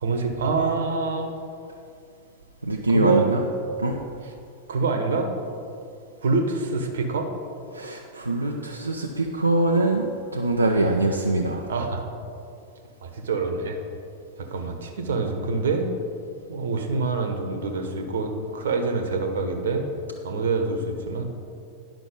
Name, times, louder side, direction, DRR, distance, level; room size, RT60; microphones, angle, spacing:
voice 1, 0.0-1.3 2.9-3.3 4.7-5.3 6.2-7.3 11.7-12.1 13.0-13.8 14.4-15.9 16.5-19.9 20.2-21.2, right 4 dB, 65° right, 5 dB, 1.1 m, -26 dB
voice 2, 2.6-3.4 3.8-3.9 7.7-10.0 10.3-11.7, right 2 dB, 80° right, 0 dB, 0.6 m, -23 dB
10.5 x 5.9 x 5.4 m, 2.4 s
figure-of-eight pair, 90°, 0 cm